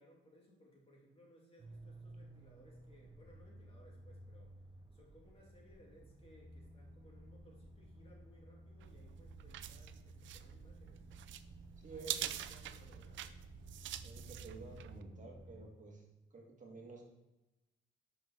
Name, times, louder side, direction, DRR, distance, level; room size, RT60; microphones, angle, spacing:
voice 1, 0.0-4.5 4.9-11.1 11.9-13.5, left 1 dB, 30° left, -2 dB, 2.7 m, -64 dB
sound 1, 1.6-15.7, right 1 dB, 20° right, 1.0 m, -56 dB
sound 2, 8.8-15.0, right 11 dB, 70° right, 0.5 m, -46 dB
voice 2, 11.8-12.2 14.0-16.0 16.3-17.0, right 3 dB, 40° right, 1 dB, 1.8 m, -51 dB
5.6 x 5.2 x 5.9 m, 0.98 s
cardioid pair, 90°, 20 cm